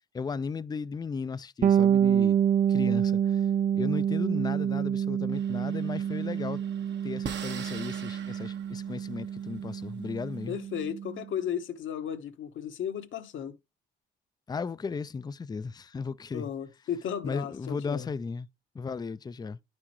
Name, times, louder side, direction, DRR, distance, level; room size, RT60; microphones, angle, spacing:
voice 1, 0.1-2.4 2.7-3.5 3.7-6.6 7.0-10.6 14.5-16.5 17.2-18.5 18.7-19.6, left 5 dB, 20° left, 0.4 m, -35 dB
Bass guitar, 1.6-11.2, right 9 dB, 40° right, 0.5 m, -27 dB
sound 1, 5.3-10.8, right 7 dB, 60° right, 1.0 m, -45 dB
voice 2, 10.5-13.6 16.3-18.1, left 9 dB, 70° left, 1.2 m, -35 dB
9.7 x 5.9 x 3.1 m
cardioid pair, 80°, 21 cm